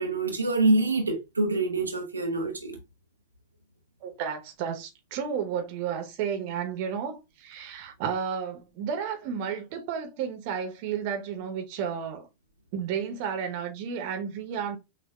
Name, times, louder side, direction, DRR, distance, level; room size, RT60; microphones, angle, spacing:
voice 1, 0.0-2.8, right 2 dB, 80° right, 0.6 m, -26 dB
voice 2, 4.0-12.3 12.7-14.8, right 7 dB, 45° right, 0.9 m, -32 dB
6.3 x 2.4 x 2.4 m
figure-of-eight pair, 90°, 0 cm